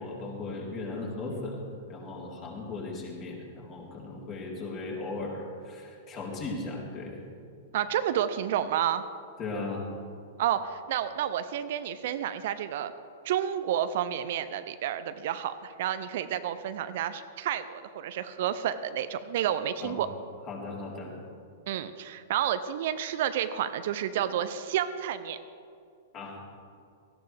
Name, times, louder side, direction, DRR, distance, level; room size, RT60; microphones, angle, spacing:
voice 1, 0.0-1.6 1.9-7.2 9.4-9.9 19.8-20.0 20.5-21.1 26.1-26.4, left 3 dB, 35° left, -3 dB, 3.9 m, -37 dB
voice 2, 7.7-9.0 10.4-12.9 13.2-20.1 21.7-25.4, right 10 dB, 55° right, 11 dB, 0.6 m, -30 dB
18.0 x 14.5 x 3.5 m, 2.4 s
figure-of-eight pair, 100°, 0 cm